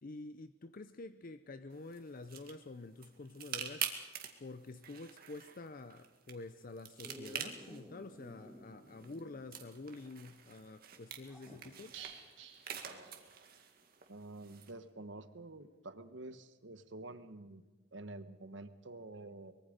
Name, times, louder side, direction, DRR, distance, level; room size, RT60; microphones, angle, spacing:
voice 1, 0.0-3.9 4.4-12.0, left 3 dB, 45° left, 0.6 m, -48 dB
sound 1, 1.7-14.7, right 8 dB, 50° right, 2.0 m, -47 dB
Dog, 7.0-9.8 10.1-10.2 11.3-11.9 13.9-14.0, equal, 5° right, 2.3 m, -54 dB
sound 2, 11.9-13.7 14.0-14.1 14.4-14.5, right 8 dB, 85° right, 4.2 m, -53 dB
voice 2, 14.1-17.6 17.9-19.5, right 2 dB, 65° right, 1.2 m, -49 dB
24.0 x 22.0 x 5.2 m
head